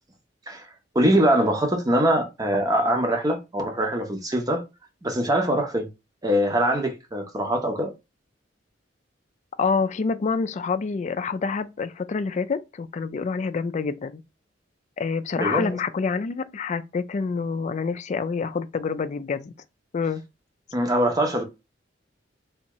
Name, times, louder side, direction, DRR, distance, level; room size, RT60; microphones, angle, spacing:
voice 1, 0.9-4.6 5.0-5.9 6.2-7.9 15.3-15.8 20.7-21.4, right 1 dB, 20° right, 0.8 m, -23 dB
voice 2, 9.6-14.2 15.0-19.5 19.9-20.2, left 5 dB, 40° left, 0.3 m, -27 dB
3.5 x 2.7 x 3.0 m
head